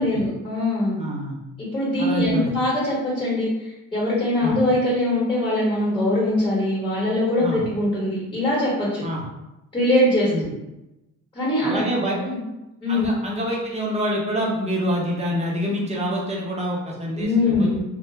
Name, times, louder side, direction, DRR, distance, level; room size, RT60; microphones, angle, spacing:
voice 1, 0.0-1.0 1.7-9.0 9.7-10.5 11.3-11.8 12.2-12.4 12.8-13.1 17.2-17.8, left 1 dB, 15° left, -6 dB, 1.1 m, -22 dB
voice 2, 1.0-1.4 2.0-2.5 4.4-4.6 7.4-7.6 9.0-9.2 10.3-10.5 11.7-12.1 12.9-17.7, equal, 20° right, -3 dB, 0.7 m, -26 dB
2.1 x 2.0 x 3.2 m, 0.95 s
cardioid pair, 110°, 32 cm